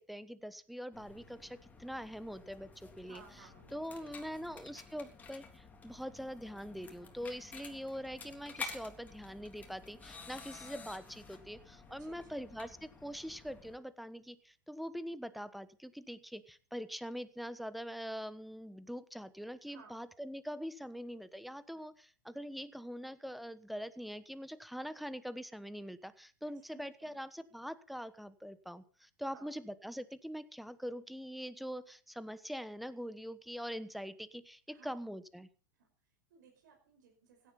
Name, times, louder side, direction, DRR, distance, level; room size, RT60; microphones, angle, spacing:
voice 1, 0.0-3.2 3.7-35.5, equal, ahead, 15 dB, 1.2 m, -43 dB
sound 1, 0.9-13.8, left 4 dB, 15° left, 3.6 m, -51 dB
voice 2, 3.0-4.5 12.0-12.7 19.7-19.9 26.4-27.2 29.2-29.5 34.7-35.0 35.7-37.5, right 5 dB, 65° right, 1 dB, 5.2 m, -60 dB
16.5 x 11.0 x 5.6 m, 0.40 s
hypercardioid pair, 105°, 10 cm